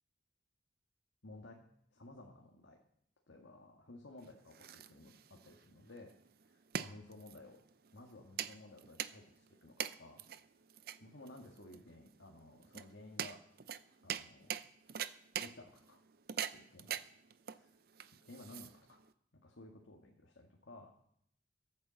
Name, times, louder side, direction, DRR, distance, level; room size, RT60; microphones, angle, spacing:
voice 1, 1.2-1.6 1.9-2.8 3.3-6.1 6.5-7.6 7.9-10.2 11.0-13.4 14.0-14.5 15.4-16.0 16.5-16.9 17.5-17.7 18.2-19.0 19.4-20.9, left 2 dB, 80° left, 0 dB, 1.8 m, -55 dB
sound 1, 4.2-19.1, right 9 dB, 50° right, 0.5 m, -44 dB
15.0 x 8.7 x 7.5 m, 0.71 s
head